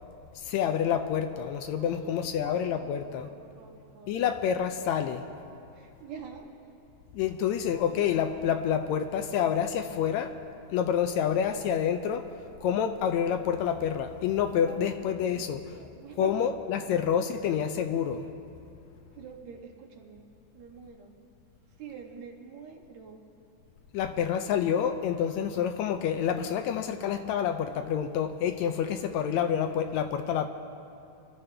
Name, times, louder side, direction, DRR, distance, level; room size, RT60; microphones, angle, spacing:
voice 1, 0.5-3.3 4.1-5.2 7.2-10.3 10.7-12.2 12.6-15.6 16.2-18.3 23.9-30.5, left 8 dB, 80° left, 7 dB, 1.8 m, -28 dB
voice 2, 1.8-4.2 5.7-6.5 14.6-15.5 15.8-16.4 19.1-20.3 20.5-21.1 21.8-23.2, right 6 dB, 70° right, 1 dB, 2.6 m, -45 dB
25.5 x 13.5 x 3.4 m, 2.7 s
omnidirectional pair, 3.4 m